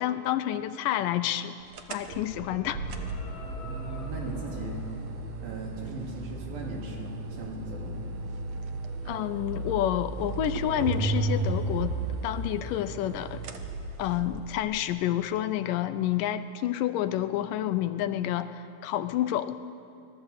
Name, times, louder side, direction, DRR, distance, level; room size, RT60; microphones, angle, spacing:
voice 1, 0.0-1.6 1.9-2.8 9.1-12.0 12.2-13.4 14.0-19.6, left 12 dB, 80° left, 11 dB, 2.2 m, -29 dB
sound 1, 1.7-14.6, right 3 dB, 55° right, 2.1 m, -34 dB
sound 2, 2.0-6.2, left 4 dB, 50° left, 2.6 m, -46 dB
voice 2, 3.5-5.1 5.4-8.1, right 2 dB, 80° right, -1 dB, 5.4 m, -38 dB
25.5 x 18.5 x 8.2 m, 2.7 s
omnidirectional pair, 4.1 m